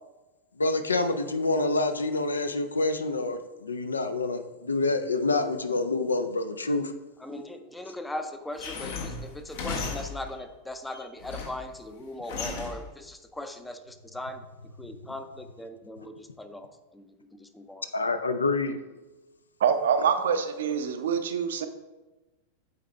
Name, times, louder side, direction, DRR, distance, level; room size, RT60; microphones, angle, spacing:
voice 1, 0.6-6.9 17.9-18.8, left 3 dB, 75° left, 9 dB, 0.4 m, -27 dB
voice 2, 7.2-14.4 14.8-17.9, left 1 dB, 5° left, 8 dB, 0.5 m, -39 dB
sound 1, 8.6-10.4 10.9-11.7 12.3-12.9, left 4 dB, 50° left, 0.8 m, -36 dB
voice 3, 19.6-21.7, right 7 dB, 60° right, 9 dB, 0.5 m, -25 dB
8.4 x 4.1 x 3.3 m, 1.1 s
figure-of-eight pair, 90°, 0 cm